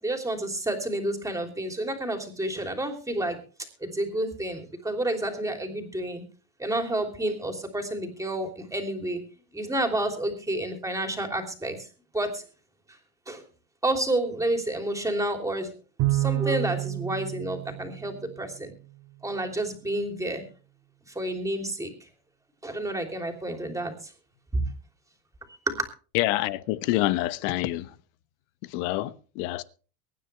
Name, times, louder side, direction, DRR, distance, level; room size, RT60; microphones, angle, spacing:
voice 1, 0.0-3.4 3.8-6.2 6.6-9.2 9.5-11.9 12.1-12.4 13.3-13.4 13.8-15.7 16.1-18.7 19.2-20.4 21.1-22.1 22.6-24.1 24.5-24.7 25.7-25.9, right 1 dB, 5° right, 3.2 m, -30 dB
Bowed string instrument, 16.0-18.6, right 17 dB, 50° right, 2.1 m, -29 dB
voice 2, 26.1-27.9 28.7-29.6, left 16 dB, 60° left, 1.2 m, -27 dB
23.5 x 10.0 x 3.3 m
supercardioid pair, 135°, 48 cm